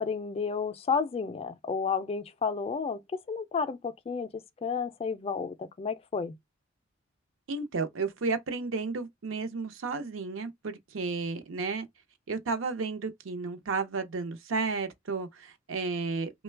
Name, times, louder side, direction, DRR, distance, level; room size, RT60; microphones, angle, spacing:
voice 1, 0.0-3.0 3.3-4.3 4.6-6.4, left 5 dB, 30° left, 0.3 m, -31 dB
voice 2, 7.5-11.9 12.3-16.4, right 4 dB, 75° right, 0.6 m, -32 dB
3.1 x 2.2 x 3.2 m
head